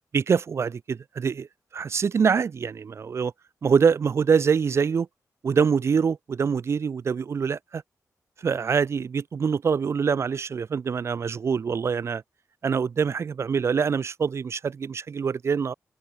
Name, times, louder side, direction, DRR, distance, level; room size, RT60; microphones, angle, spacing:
voice 1, 0.1-1.5 1.7-3.3 3.6-5.1 5.4-7.8 8.4-12.2 12.6-15.7, right 6 dB, 50° right, 1.0 m, -24 dB
open air
wide cardioid pair, 140°, 6 cm